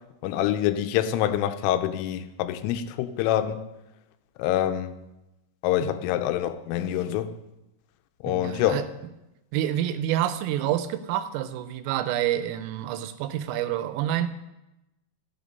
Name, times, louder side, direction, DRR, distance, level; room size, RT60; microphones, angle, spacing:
voice 1, 0.2-3.6 4.4-5.0 5.6-7.3 8.2-8.8, left 12 dB, 85° left, 3.1 m, -26 dB
voice 2, 8.3-8.8 9.5-14.3, right 12 dB, 85° right, 3.4 m, -28 dB
14.5 x 7.3 x 5.3 m
omnidirectional pair, 5.8 m